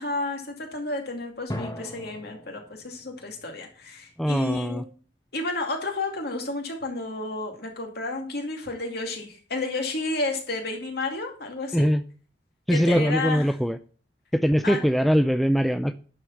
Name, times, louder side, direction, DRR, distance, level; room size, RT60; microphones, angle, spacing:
voice 1, 0.0-4.9 5.3-11.9 12.7-13.5 14.6-14.8, left 2 dB, 60° left, 3 dB, 2.4 m, -31 dB
sound 1, 1.5-4.9, left 1 dB, 20° left, 1.4 m, -40 dB
voice 2, 4.2-4.8 11.7-12.0 12.7-13.8 14.3-16.0, equal, ahead, 11 dB, 0.3 m, -22 dB
11.0 x 4.9 x 5.7 m, 0.41 s
head